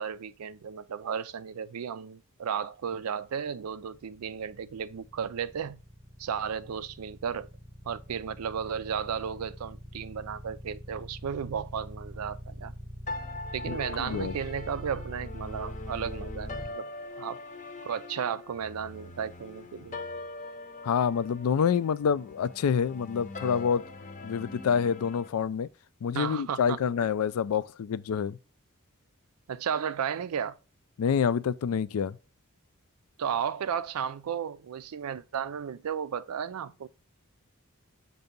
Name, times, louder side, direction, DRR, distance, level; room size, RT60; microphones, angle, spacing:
voice 1, 0.0-5.8 6.2-7.5 7.8-12.7 13.5-16.9 17.2-17.4 17.8-20.0 26.1-26.8 29.5-30.6 33.2-36.9, right 7 dB, 90° right, 0.4 m, -34 dB
sound 1, 3.7-16.7, equal, ahead, 0.9 m, -42 dB
sound 2, 13.1-25.3, left 3 dB, 35° left, 0.7 m, -42 dB
voice 2, 20.8-23.8 24.2-25.7 26.0-28.4 31.0-32.2, left 7 dB, 75° left, 0.3 m, -27 dB
6.8 x 2.7 x 5.1 m
head